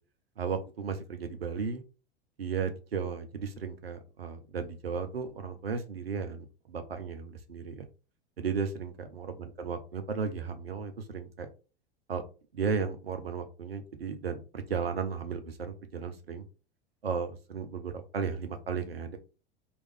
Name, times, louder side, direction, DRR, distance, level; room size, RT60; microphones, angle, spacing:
voice 1, 0.4-1.8 2.4-7.9 8.4-11.5 12.1-12.2 12.5-16.4 17.0-19.2, right 6 dB, 80° right, 8 dB, 0.7 m, -35 dB
3.0 x 2.5 x 3.4 m, 0.33 s
figure-of-eight pair, 85°, 29 cm